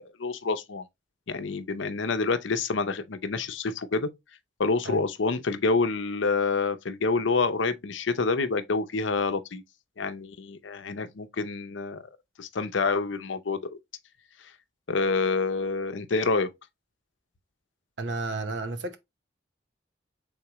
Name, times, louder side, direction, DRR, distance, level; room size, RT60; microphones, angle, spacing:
voice 1, 0.2-0.8 1.3-4.1 4.6-9.6 10.0-12.0 12.4-13.6 14.9-16.5, left 4 dB, 80° left, 0.6 m, -27 dB
voice 2, 18.0-19.0, right 3 dB, 75° right, 0.8 m, -32 dB
4.7 x 3.7 x 3.0 m
head